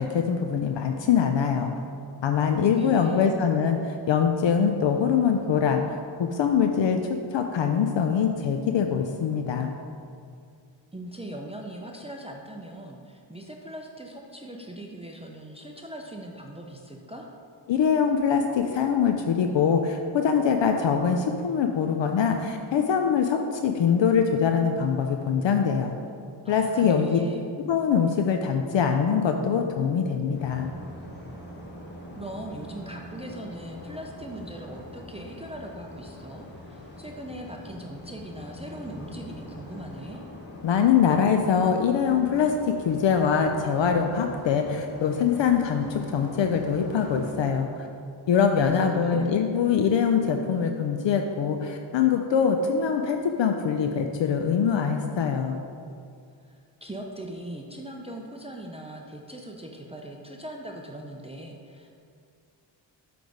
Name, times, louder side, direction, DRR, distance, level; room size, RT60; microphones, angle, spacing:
voice 1, 0.0-1.7 2.2-5.8 6.2-7.0 7.3-9.7 17.7-25.9 26.5-27.2 27.7-30.7 40.6-47.9 48.3-55.6, left 7 dB, 70° left, 4 dB, 0.5 m, -23 dB
voice 2, 2.7-3.3 10.9-17.3 26.4-27.5 32.2-40.2 48.9-49.4 56.5-61.9, right 1 dB, 15° right, 0 dB, 0.5 m, -40 dB
sound 1, 30.3-47.3, left 1 dB, 25° left, 1.3 m, -43 dB
7.8 x 3.4 x 4.9 m, 2.3 s
wide cardioid pair, 75°, 46 cm